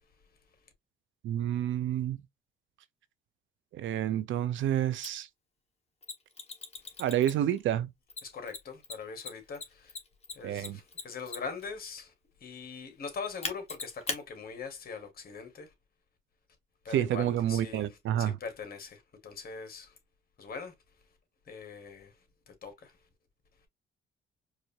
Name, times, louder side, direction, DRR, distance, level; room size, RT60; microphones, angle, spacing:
voice 1, 1.2-2.2 3.7-5.3 7.0-7.9 10.4-10.8 16.9-18.4, right 11 dB, 75° right, 0.6 m, -29 dB
Mechanisms, 5.0-5.1 6.0-7.6 8.1-11.6 13.4-14.2, left 4 dB, 30° left, 1.3 m, -38 dB
voice 2, 8.2-10.0 10.3-12.1 12.4-15.7 16.8-20.0 20.4-20.7 21.5-22.1 22.5-23.0, left 5 dB, 50° left, 1.7 m, -42 dB
4.8 x 2.6 x 2.7 m
cardioid pair, 90°, 20 cm